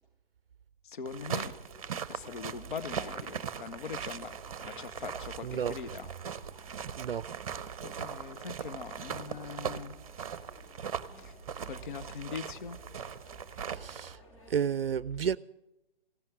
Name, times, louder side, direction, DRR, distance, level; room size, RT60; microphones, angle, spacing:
voice 1, 0.8-1.6 2.1-6.1 7.8-10.0 11.2-11.4 11.6-12.8, left 6 dB, 55° left, 0.7 m, -42 dB
sound 1, 1.0-14.2, right 7 dB, 35° right, 0.7 m, -40 dB
sound 2, 1.3-14.7, left 1 dB, 35° left, 2.9 m, -57 dB
voice 2, 5.4-5.7 6.9-7.3 13.7-14.2 14.5-15.4, right 8 dB, 70° right, 0.4 m, -31 dB
sound 3, 6.2-14.0, left 1 dB, 85° left, 1.9 m, -59 dB
15.5 x 11.0 x 7.7 m
figure-of-eight pair, 135°, 30 cm